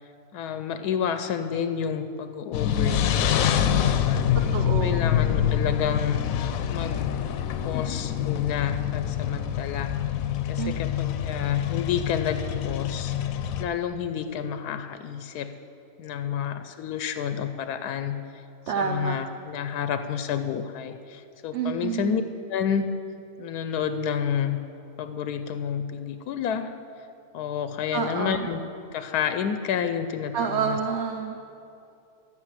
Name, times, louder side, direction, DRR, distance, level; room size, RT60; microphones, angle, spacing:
voice 1, 0.3-4.2 4.8-6.2 6.7-7.2 7.6-9.9 10.5-13.1 13.6-15.5 16.0-18.2 18.8-22.2 22.5-22.9 23.4-24.6 25.0-26.7 27.3-28.6 28.9-30.8, left 8 dB, 90° left, 9 dB, 1.2 m, -30 dB
sound 1, 2.5-13.6, left 9 dB, 70° left, 1.0 m, -26 dB
voice 2, 4.3-5.0 10.6-10.8 18.7-19.2 21.5-22.2 27.9-28.5 30.3-31.4, right 6 dB, 60° right, 4 dB, 0.8 m, -28 dB
13.5 x 6.1 x 7.4 m, 2.6 s
omnidirectional pair, 1.6 m